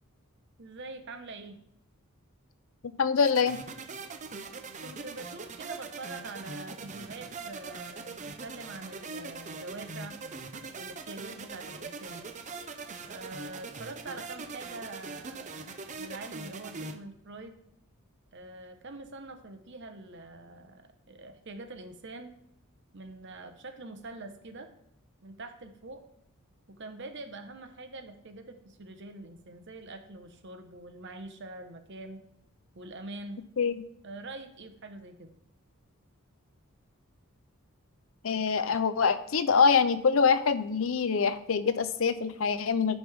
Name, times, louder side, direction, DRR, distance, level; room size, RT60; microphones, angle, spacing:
voice 1, 0.6-1.6 4.8-10.2 10.7-12.2 13.1-15.7 16.0-17.6 18.3-22.3 22.9-24.7 25.2-26.0 26.7-32.2 32.7-33.4 34.0-35.3, right 2 dB, 55° right, 7 dB, 1.0 m, -44 dB
voice 2, 3.0-3.6 33.6-33.8 38.2-43.0, left 5 dB, 65° left, 12 dB, 0.5 m, -25 dB
sound 1, 3.2-16.9, right 4 dB, 35° right, 0.6 m, -42 dB
10.5 x 5.3 x 3.5 m, 0.81 s
head